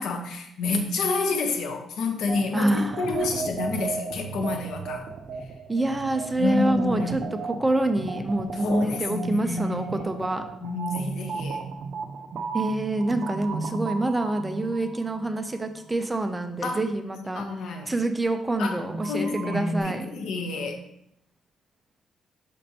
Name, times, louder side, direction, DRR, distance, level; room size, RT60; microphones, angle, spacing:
voice 1, 0.0-5.1 6.4-7.3 8.5-9.9 10.6-11.7 16.6-16.8 17.3-17.9 18.6-18.8 19.1-20.8, left 3 dB, 75° left, 4 dB, 1.0 m, -29 dB
sound 1, 2.3-16.0 18.7-19.8, right 4 dB, 55° right, 0.6 m, -35 dB
voice 2, 2.5-3.3 5.7-7.2 7.5-10.4 12.5-17.4 17.9-20.2, right 2 dB, 10° right, 7 dB, 0.5 m, -26 dB
10.5 x 4.2 x 2.9 m, 0.79 s
cardioid pair, 145°, 0 cm